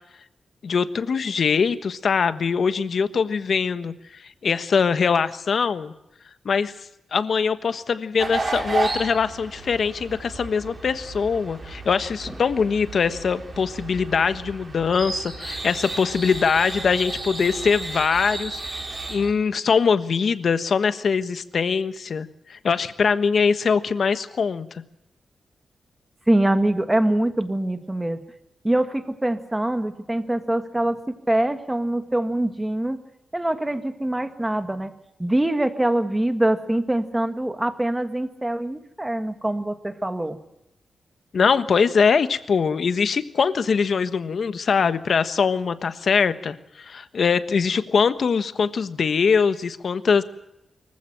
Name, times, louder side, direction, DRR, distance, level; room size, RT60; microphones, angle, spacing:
voice 1, 0.6-5.9 6.4-6.7 7.1-24.7 41.3-50.2, left 5 dB, 55° left, 11 dB, 1.3 m, -22 dB
sound 1, 8.2-19.3, right 3 dB, 30° right, 5.1 m, -33 dB
voice 2, 26.3-28.2 28.6-31.0 31.3-33.0 33.3-34.9 35.2-40.4, right 1 dB, 10° right, 9 dB, 1.7 m, -24 dB
24.5 x 15.0 x 8.9 m, 0.86 s
wide cardioid pair, 170°, 0 cm